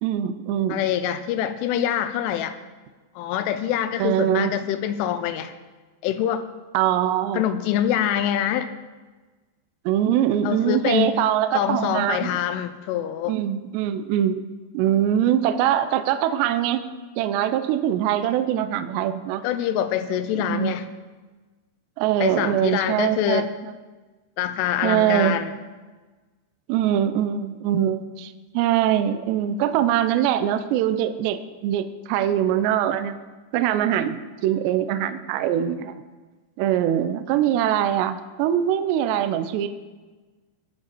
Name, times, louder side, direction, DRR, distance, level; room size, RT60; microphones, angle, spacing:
voice 1, 0.0-0.8 4.0-4.5 6.7-7.4 9.9-12.3 13.3-14.4 14.7-16.8 17.2-19.4 20.4-20.7 22.0-23.5 24.8-25.4 26.7-33.2 33.5-36.0 36.6-39.7, right 11 dB, 80° right, 9 dB, 2.6 m, -23 dB
voice 2, 0.7-2.6 3.2-5.5 6.0-6.4 7.3-8.7 10.4-11.2 11.5-13.4 19.4-20.9 22.2-23.5 24.4-25.5, left 10 dB, 85° left, 11 dB, 3.2 m, -25 dB
21.5 x 7.3 x 4.5 m, 1.3 s
omnidirectional pair, 5.6 m